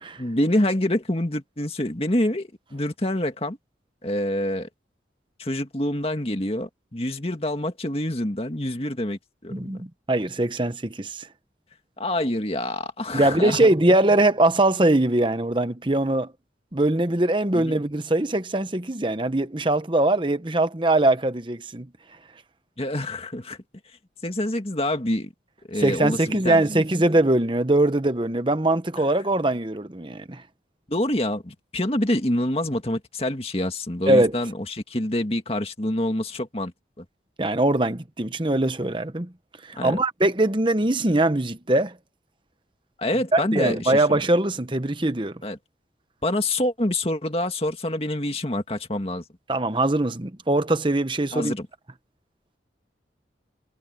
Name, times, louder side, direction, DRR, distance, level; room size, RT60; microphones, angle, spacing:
voice 1, 0.2-3.6 4.0-4.7 5.4-9.7 12.0-13.7 17.5-17.8 22.8-23.6 24.2-25.3 25.7-27.1 30.9-36.7 37.0-37.1 39.8-40.0 43.0-44.0 45.4-45.6 46.2-49.2 51.3-51.7, left 1 dB, 30° left, 2.1 m, -26 dB
voice 2, 9.5-11.3 13.1-16.3 16.7-21.9 25.8-30.4 34.1-34.4 37.4-39.3 39.7-41.9 43.3-45.4 49.5-51.5, right 2 dB, 25° right, 1.1 m, -22 dB
head